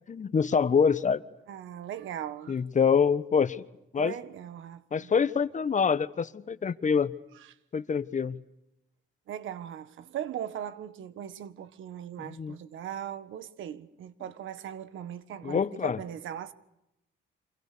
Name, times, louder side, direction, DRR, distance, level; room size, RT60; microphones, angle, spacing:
voice 1, 0.1-1.2 2.5-3.6 3.9-4.1 4.9-7.1 7.7-8.4 12.3-12.5 15.4-16.0, left 6 dB, 40° left, 1.3 m, -25 dB
voice 2, 1.5-2.6 3.9-5.1 7.3-7.5 9.3-16.5, right 10 dB, 80° right, 1.6 m, -39 dB
29.5 x 27.0 x 6.9 m
cardioid pair, 90°, 20 cm